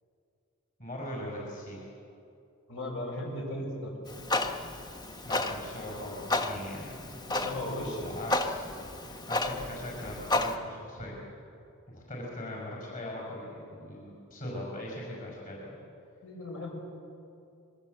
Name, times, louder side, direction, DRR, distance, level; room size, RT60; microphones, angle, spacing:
voice 1, 0.8-1.8 5.2-7.2 7.8-11.2 11.9-15.8, left 1 dB, 40° left, -2 dB, 5.7 m, -40 dB
voice 2, 2.7-4.2 7.3-8.2 16.2-16.7, left 1 dB, 65° left, -1 dB, 7.1 m, -36 dB
Clock, 4.1-10.5, left 2 dB, 20° left, 1.3 m, -33 dB
27.0 x 22.5 x 8.1 m, 2.6 s
head